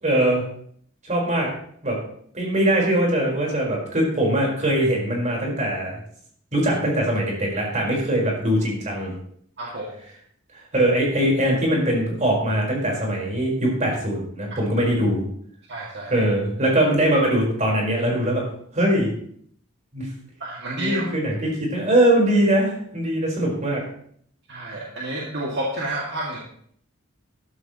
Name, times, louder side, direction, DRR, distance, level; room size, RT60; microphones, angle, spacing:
voice 1, 0.0-0.4 1.0-1.5 1.8-2.0 2.3-6.0 6.5-9.1 10.7-15.2 16.1-18.4 18.7-19.1 19.9-20.1 20.8-23.8, right 1 dB, 35° right, -1 dB, 4.5 m, -21 dB
voice 2, 15.7-16.2 20.4-21.1 24.5-26.4, right 1 dB, 55° right, -4 dB, 2.2 m, -30 dB
13.0 x 12.5 x 3.0 m, 0.63 s
head